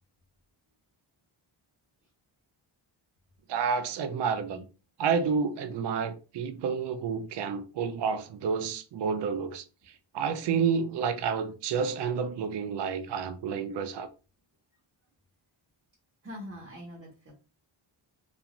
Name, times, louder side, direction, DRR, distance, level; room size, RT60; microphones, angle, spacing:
voice 1, 3.5-4.7 5.0-9.6 10.1-14.1, right 6 dB, 60° right, 0.5 m, -29 dB
voice 2, 16.2-17.3, equal, 25° right, 0.8 m, -43 dB
2.4 x 2.4 x 2.9 m
cardioid pair, 80°, 50 cm